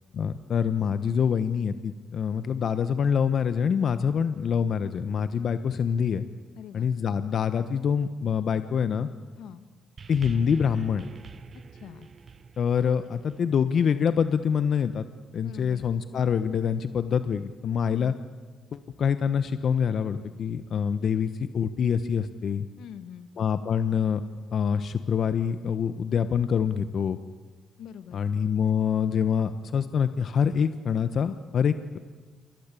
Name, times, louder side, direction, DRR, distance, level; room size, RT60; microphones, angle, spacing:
voice 1, 0.1-6.2 6.7-9.1 10.1-11.1 12.6-15.0 15.3-18.1 18.7-22.7 23.4-24.2 24.5-27.2 28.1-32.0, left 7 dB, 55° left, 11 dB, 1.2 m, -25 dB
voice 2, 6.6-6.9 9.4-9.6 11.7-12.1 15.4-15.8 17.9-18.1 22.8-23.3 27.8-28.2, left 9 dB, 80° left, 11 dB, 1.8 m, -43 dB
sound 1, 10.0-14.5 15.4-15.5, right 5 dB, 45° right, 1.4 m, -46 dB
28.0 x 24.5 x 8.5 m, 1.4 s
cardioid pair, 90°, 0 cm